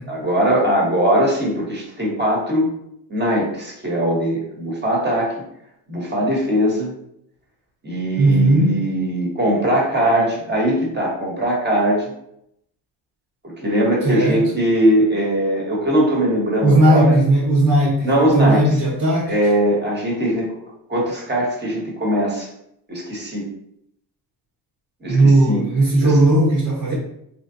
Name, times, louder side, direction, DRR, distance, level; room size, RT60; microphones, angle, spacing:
voice 1, 0.1-2.7 3.1-5.3 5.9-6.9 7.8-12.1 13.4-17.1 18.0-18.6 19.3-20.5 20.9-22.5 22.9-23.5 25.0-25.6 26.0-26.2 26.9-27.0, right 1 dB, 20° right, -3 dB, 1.5 m, -20 dB
voice 2, 8.2-8.7 14.0-14.4 16.6-19.3 25.1-26.9, right 1 dB, 40° right, -7 dB, 1.2 m, -16 dB
3.4 x 2.5 x 2.7 m, 0.76 s
supercardioid pair, 60°, 46 cm